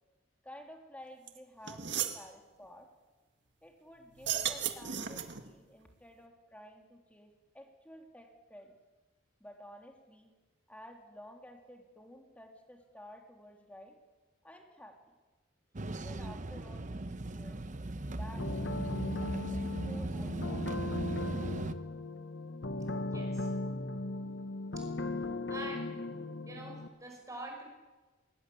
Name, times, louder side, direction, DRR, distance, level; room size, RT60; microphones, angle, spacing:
voice 1, 0.4-2.9 3.6-8.8 9.4-10.3 10.7-14.0 14.4-15.0 15.9-17.6 18.1-20.7, equal, 5° left, 3 dB, 2.9 m, -53 dB
sound 1, 1.3-1.4 1.7-2.2 4.1-5.5, right 9 dB, 65° right, 1.8 m, -35 dB
sound 2, 15.7-21.7, right 2 dB, 40° right, 0.9 m, -38 dB
sound 3, 18.4-26.9, left 2 dB, 65° left, 1.3 m, -37 dB
voice 2, 23.0-23.5 24.8-24.9 25.5-25.9 26.5-27.6, right 1 dB, 15° right, 2 dB, 5.6 m, -45 dB
20.5 x 19.0 x 8.6 m, 1.2 s
head